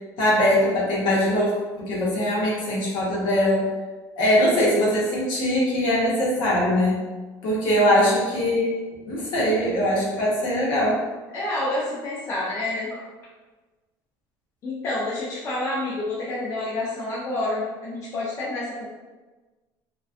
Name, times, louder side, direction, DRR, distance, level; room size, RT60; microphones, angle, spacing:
voice 1, 0.2-3.7 4.2-7.0 7.4-8.7 9.1-11.0, equal, 60° left, -5 dB, 0.9 m, -21 dB
voice 2, 11.3-13.0 14.6-18.9, left 2 dB, 30° left, -7 dB, 0.4 m, -28 dB
2.5 x 2.3 x 2.3 m, 1.3 s
cardioid pair, 170°, 9 cm